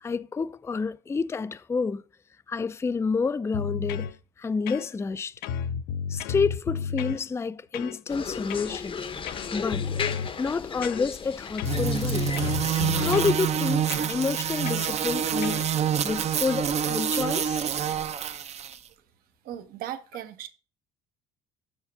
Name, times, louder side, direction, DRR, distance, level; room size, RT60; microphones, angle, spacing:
voice 1, 0.0-2.0 2.5-4.1 4.4-5.3 6.1-9.0 9.5-9.8 10.4-12.3 13.0-15.7 16.0-17.6, left 5 dB, 15° left, 0.4 m, -29 dB
sound 1, 3.5-4.1 4.7-5.1 5.4-7.2 7.7-8.0 8.5-8.8 9.3-10.3 10.8-11.3 11.6-13.4 13.9-14.1 14.7-14.9 15.4-15.7, left 7 dB, 75° left, 0.5 m, -32 dB
sound 2, 8.1-13.1, left 6 dB, 35° left, 0.8 m, -35 dB
sound 3, 11.6-18.8, right 8 dB, 45° right, 0.7 m, -27 dB
voice 2, 19.4-20.5, right 11 dB, 70° right, 1.0 m, -37 dB
7.3 x 4.7 x 5.5 m
supercardioid pair, 80°, 16 cm